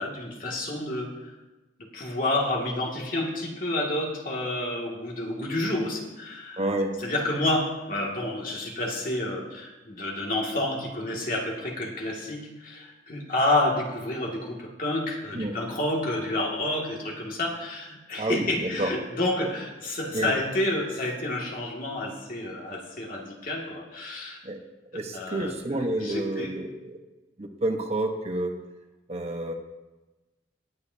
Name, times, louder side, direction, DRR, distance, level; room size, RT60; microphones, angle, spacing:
voice 1, 0.0-1.3 1.9-6.7 7.0-24.4 25.1-25.5 26.0-26.5, left 1 dB, 50° left, -2 dB, 2.2 m, -29 dB
voice 2, 6.6-7.0 15.3-15.5 18.2-18.9 20.1-20.3 24.4-24.6 24.9-27.0 27.4-28.5 29.1-29.5, right 1 dB, 35° right, 3 dB, 1.1 m, -29 dB
20.0 x 8.9 x 2.8 m, 1.1 s
head